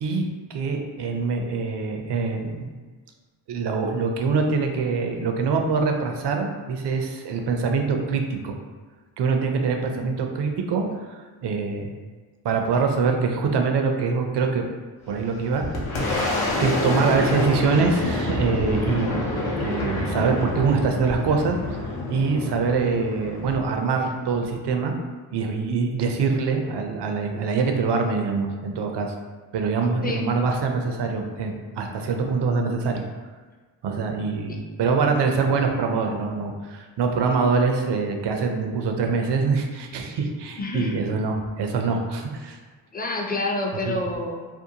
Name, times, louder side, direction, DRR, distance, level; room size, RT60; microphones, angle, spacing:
voice 1, 0.0-2.7 3.5-8.6 9.2-11.9 12.4-14.6 15.1-19.2 19.6-21.6 22.1-24.9 25.3-29.1 29.5-33.0 33.8-42.6 43.8-43.9, right 4 dB, 60° right, 3 dB, 0.5 m, -24 dB
Boom, 15.1-24.5, left 2 dB, 75° left, 0.7 m, -27 dB
voice 2, 40.6-41.0 42.9-44.5, left 2 dB, 20° left, 0 dB, 0.4 m, -28 dB
2.7 x 2.1 x 2.7 m, 1.4 s
cardioid pair, 55°, 48 cm